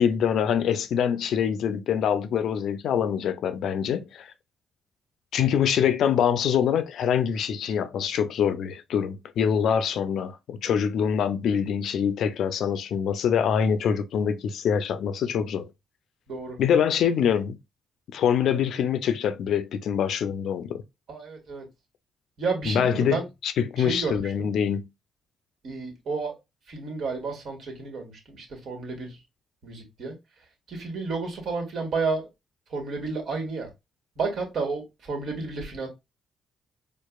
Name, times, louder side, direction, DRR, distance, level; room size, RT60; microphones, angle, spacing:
voice 1, 0.0-4.3 5.3-15.7 16.6-17.6 18.1-20.8 22.7-23.2 23.4-24.8, left 8 dB, 70° left, 0.4 m, -24 dB
voice 2, 16.3-16.6 17.1-17.2 21.1-21.7 22.4-23.3 23.8-24.5 25.6-26.4 26.7-29.2 29.6-30.1 30.7-32.3 32.7-33.7 34.1-35.9, right 4 dB, 60° right, 1.7 m, -31 dB
4.6 x 2.4 x 2.3 m
cardioid pair, 90°, 0 cm